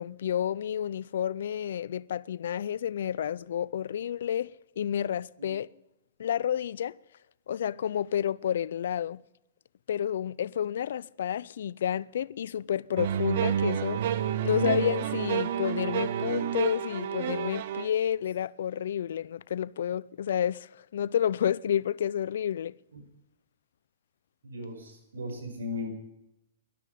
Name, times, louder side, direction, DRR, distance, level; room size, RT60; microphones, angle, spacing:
voice 1, 0.0-5.7 6.2-6.9 7.5-9.2 9.9-14.0 14.4-22.7, left 9 dB, 70° left, 0.4 m, -30 dB
sound 1, 13.0-17.9, right 9 dB, 60° right, 1.0 m, -29 dB
voice 2, 24.4-25.9, left 2 dB, 80° right, 5.7 m, -37 dB
12.0 x 12.0 x 9.2 m
hypercardioid pair, 120°, 0 cm